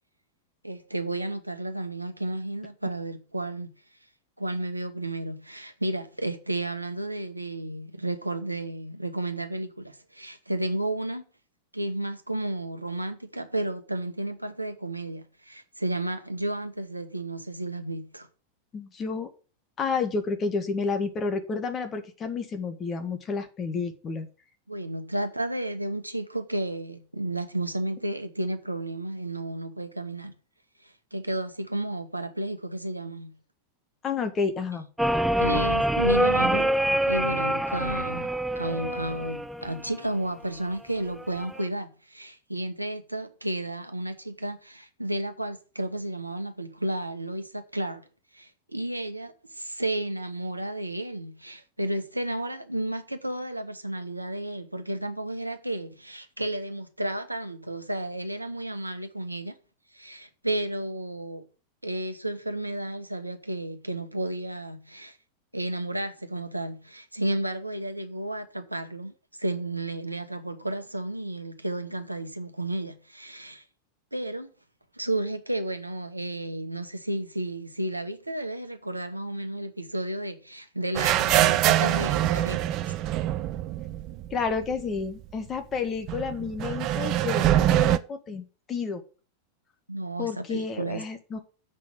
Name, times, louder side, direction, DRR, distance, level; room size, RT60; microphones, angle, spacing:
voice 1, 0.6-3.7 4.4-11.2 11.7-18.3 24.7-30.3 30.8-33.3 35.4-38.3 38.6-48.0 48.3-59.5 59.9-61.4 61.8-65.2 65.5-69.1 69.4-73.6 74.1-74.5 74.9-83.0 89.9-91.0, right 1 dB, 85° right, 1.1 m, -32 dB
voice 2, 18.7-19.3 19.8-24.3 34.0-34.9 84.3-89.0 90.2-91.4, left 5 dB, 25° left, 1.7 m, -30 dB
sound 1, 35.0-40.0 41.2-41.7, right 1 dB, 5° right, 0.7 m, -25 dB
sound 2, 80.9-84.7 85.0-85.1 86.1-88.0, right 13 dB, 40° right, 0.6 m, -24 dB
7.6 x 6.0 x 7.8 m
figure-of-eight pair, 90°, 0 cm